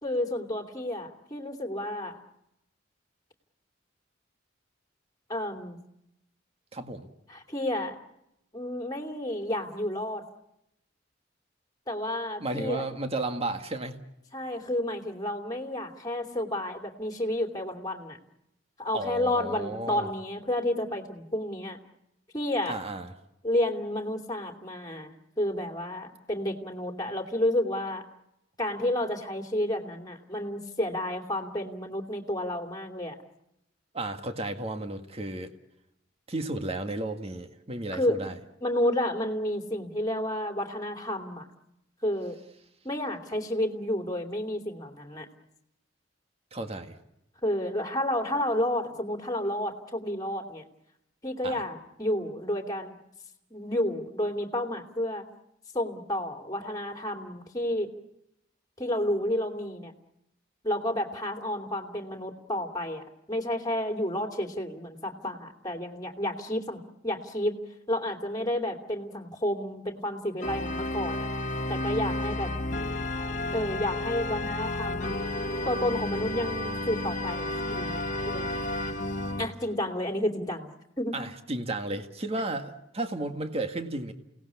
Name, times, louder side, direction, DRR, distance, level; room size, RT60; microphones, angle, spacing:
voice 1, 0.0-2.2 5.3-5.8 7.3-7.9 8.5-10.2 11.9-12.8 14.3-18.2 18.8-21.8 22.3-22.8 23.4-28.0 28.6-33.2 37.9-38.2 38.6-41.4 42.0-42.4 42.8-45.3 47.4-50.6 51.2-53.0 53.5-55.2 55.7-57.9 58.8-59.9 60.6-67.6 67.9-71.2 71.7-72.6 73.5-75.2 75.6-78.5 79.4-81.1, left 1 dB, 20° left, 5 dB, 2.8 m, -31 dB
voice 2, 6.7-7.1 12.4-14.0 18.9-20.1 22.7-23.1 33.9-35.5 36.3-38.4 46.5-46.9 51.4-51.6 81.1-84.1, right 2 dB, 35° right, 7 dB, 1.8 m, -33 dB
Organ, 70.4-79.5, left 1 dB, 40° left, 1.4 m, -31 dB
29.0 x 18.5 x 8.4 m, 0.85 s
head